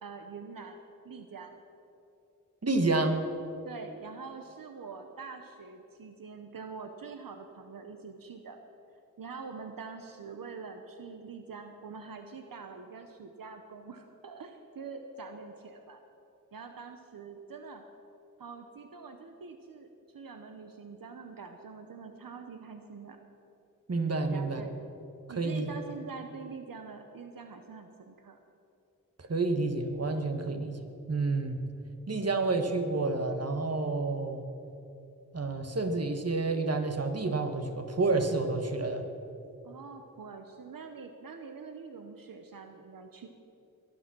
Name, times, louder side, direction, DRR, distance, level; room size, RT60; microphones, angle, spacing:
voice 1, 0.0-1.6 3.6-8.6 9.2-16.0 16.5-17.8 18.4-23.2 24.3-24.7 25.3-28.4 30.5-30.7 39.6-43.3, right 5 dB, 80° right, 6 dB, 1.0 m, -45 dB
voice 2, 2.6-3.2 23.9-24.6 25.4-25.7 29.2-31.6 32.1-34.4 35.3-39.1, right 3 dB, 45° right, 6 dB, 1.5 m, -29 dB
22.0 x 9.2 x 6.2 m, 2.8 s
wide cardioid pair, 80°, 34 cm